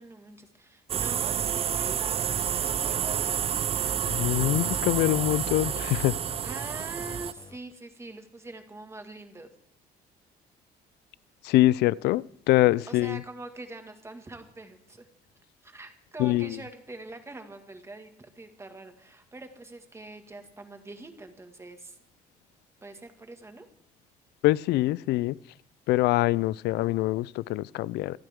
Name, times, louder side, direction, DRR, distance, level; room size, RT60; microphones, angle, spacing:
voice 1, 0.0-2.2 2.5-3.3 6.4-9.5 12.9-15.1 15.6-22.0 22.8-23.7, right 2 dB, 15° right, 1.9 m, -44 dB
sound 1, 0.9-7.3, right 9 dB, 35° right, 0.4 m, -29 dB
sound 2, 2.2-7.7, left 5 dB, 25° left, 0.8 m, -48 dB
voice 2, 4.1-6.1 11.4-13.2 16.2-16.6 24.4-25.3 25.9-28.2, left 17 dB, 80° left, 0.4 m, -24 dB
26.0 x 9.0 x 3.6 m
cardioid pair, 110°, 17 cm